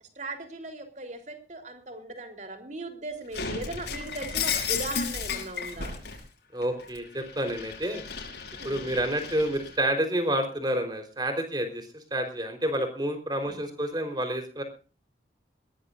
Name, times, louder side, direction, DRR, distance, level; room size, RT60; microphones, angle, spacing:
voice 1, 0.2-5.9 8.6-8.8 13.4-13.6, right 2 dB, 40° right, 6 dB, 3.7 m, -38 dB
Shatter, 3.3-6.2 6.6-9.8, left 6 dB, 70° left, 5.7 m, -34 dB
voice 2, 6.5-8.0 8.6-14.6, right 1 dB, 25° right, 7 dB, 4.2 m, -29 dB
21.5 x 17.5 x 2.6 m, 0.36 s
head